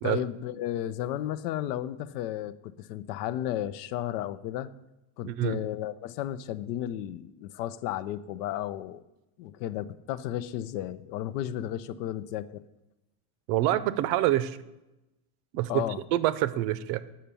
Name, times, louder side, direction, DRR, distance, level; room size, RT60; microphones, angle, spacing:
voice 1, 0.0-4.7 5.2-9.0 9.4-12.6 15.7-16.0, left 12 dB, 85° left, 15 dB, 0.6 m, -33 dB
voice 2, 5.2-5.6 13.5-14.6 15.5-15.8 16.1-17.0, right 14 dB, 60° right, 16 dB, 0.6 m, -26 dB
7.5 x 5.7 x 6.8 m, 0.97 s
cardioid pair, 155°, 45 cm